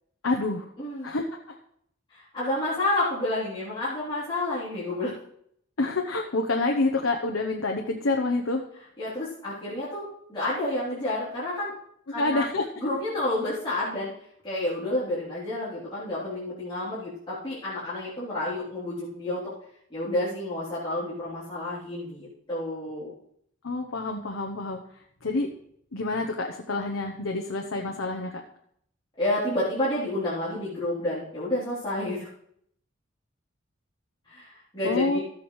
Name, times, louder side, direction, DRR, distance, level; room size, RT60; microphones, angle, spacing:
voice 1, 0.2-0.7 1.0-1.6 5.8-8.6 12.2-12.7 23.6-24.8 25.2-25.5 25.9-28.4 34.8-35.2, left 2 dB, 85° left, 2 dB, 0.9 m, -27 dB
voice 2, 0.8-1.1 2.1-5.1 9.0-11.7 12.1-12.4 12.8-14.1 14.4-19.5 19.9-23.1 29.2-32.3 34.3-35.2, left 1 dB, 25° left, -12 dB, 3.4 m, -30 dB
13.5 x 8.4 x 3.2 m, 0.69 s
head